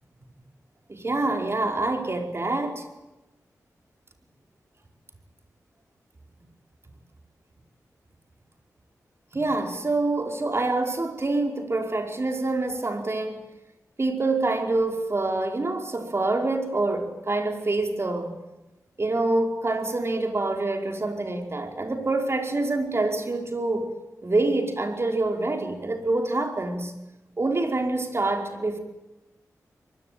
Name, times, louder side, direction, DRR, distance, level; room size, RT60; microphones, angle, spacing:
voice 1, 0.9-2.9 9.3-13.4 14.0-18.3 19.0-23.9 24.2-26.9 27.4-28.8, right 2 dB, 45° right, 4.9 m, -26 dB
24.5 x 20.5 x 9.4 m
cardioid pair, 50°, 6 cm